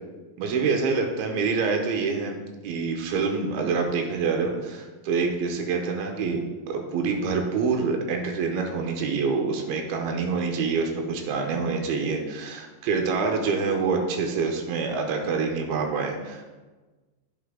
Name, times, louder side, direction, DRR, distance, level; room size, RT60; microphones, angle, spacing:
voice 1, 0.4-16.6, right 4 dB, 85° right, 3 dB, 2.7 m, -26 dB
9.9 x 5.4 x 3.7 m, 1.2 s
omnidirectional pair, 4.4 m